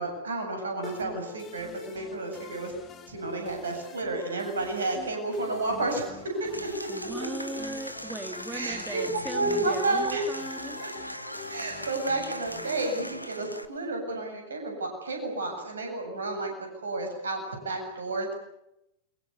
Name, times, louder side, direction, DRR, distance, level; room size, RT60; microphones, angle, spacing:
voice 1, 0.0-2.7 3.1-6.9 8.5-10.2 11.5-18.3, right 2 dB, 70° right, 4 dB, 8.0 m, -31 dB
sound 1, 0.8-13.9, left 7 dB, 30° left, 3.6 m, -46 dB
Applause / Crowd, 6.5-13.6, equal, 90° left, 1.2 m, -39 dB
voice 2, 6.9-10.8, right 2 dB, 10° right, 8 dB, 2.4 m, -38 dB
29.0 x 24.0 x 7.0 m, 0.85 s
figure-of-eight pair, 90°, 0 cm